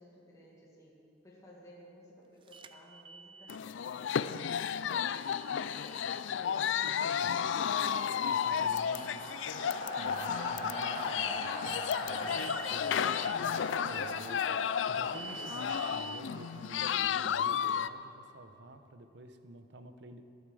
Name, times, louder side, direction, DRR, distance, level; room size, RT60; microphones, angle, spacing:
voice 1, 0.0-6.8 12.2-12.7, equal, 20° left, -5 dB, 2.2 m, -58 dB
sound 1, 2.5-3.6 5.2-6.3 8.3-9.4 12.2-13.4 15.1-16.2, right 4 dB, 30° right, 0.5 m, -48 dB
sound 2, 3.5-17.9, left 8 dB, 75° left, 0.4 m, -33 dB
sound 3, 5.7-17.5, left 1 dB, 35° left, 2.5 m, -42 dB
voice 2, 8.3-9.3 10.0-20.2, right 1 dB, 65° right, 8 dB, 0.9 m, -51 dB
19.0 x 12.0 x 4.9 m, 2.8 s
head